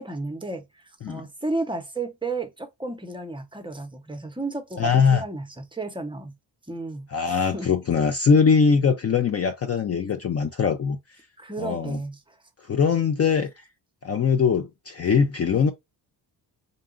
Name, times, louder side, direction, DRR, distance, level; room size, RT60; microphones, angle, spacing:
voice 1, 0.0-6.3 6.7-7.7 11.4-12.4, right 2 dB, 10° right, 0.7 m, -33 dB
voice 2, 4.8-5.2 7.1-11.0 11.6-12.0 12.6-13.7 14.0-15.7, left 6 dB, 35° left, 0.4 m, -21 dB
3.8 x 2.3 x 3.7 m
cardioid pair, 135°, 43 cm